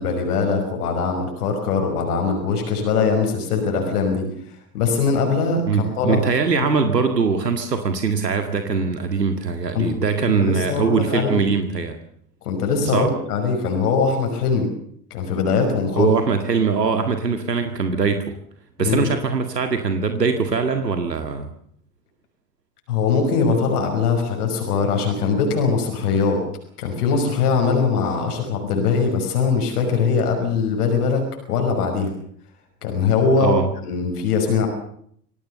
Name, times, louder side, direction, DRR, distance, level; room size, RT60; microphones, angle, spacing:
voice 1, 0.0-6.2 6.5-6.6 9.7-9.9 10.4-11.4 12.4-14.7 15.1-16.1 18.8-19.1 22.9-26.4 26.8-32.1 32.8-34.7, left 5 dB, 70° left, 3 dB, 5.8 m, -21 dB
voice 2, 5.7-12.0 12.9-13.1 16.0-18.2 18.8-21.5 33.4-33.7, right 5 dB, 85° right, 7 dB, 2.1 m, -21 dB
26.5 x 18.0 x 6.8 m, 0.66 s
figure-of-eight pair, 80°, 47 cm